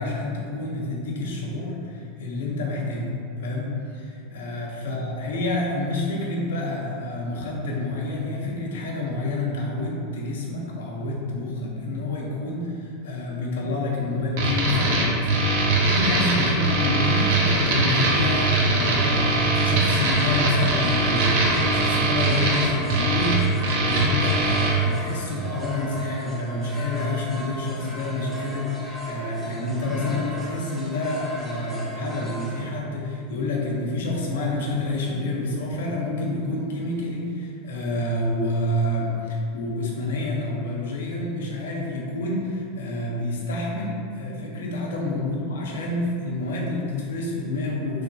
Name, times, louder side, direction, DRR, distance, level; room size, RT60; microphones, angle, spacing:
voice 1, 0.0-48.0, left 2 dB, 85° left, -2 dB, 0.6 m, -28 dB
sound 1, 14.4-24.7, right 2 dB, 70° right, 0.6 m, -21 dB
sound 2, 19.6-32.6, right 1 dB, ahead, 0.7 m, -36 dB
3.1 x 2.9 x 2.6 m, 2.5 s
supercardioid pair, 120°, 0 cm